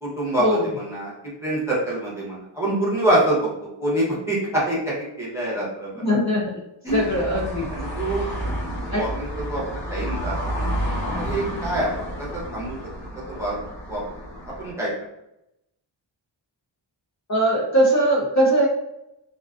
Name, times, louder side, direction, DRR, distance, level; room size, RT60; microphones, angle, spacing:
voice 1, 0.0-1.1 1.4-3.5 3.8-6.2 6.8-7.3 7.7-8.3 8.9-10.3 11.2-12.8 13.3-13.6 13.9-14.2 14.4-14.9, right 1 dB, 5° right, -7 dB, 0.7 m, -26 dB
voice 2, 6.0-6.6 6.9-7.7 8.9-9.0 17.3-18.7, right 1 dB, 40° left, -4 dB, 0.5 m, -20 dB
sound 1, 6.9-14.7, equal, 75° left, 1.1 m, -30 dB
2.4 x 2.3 x 2.3 m, 0.84 s
wide cardioid pair, 160°, 47 cm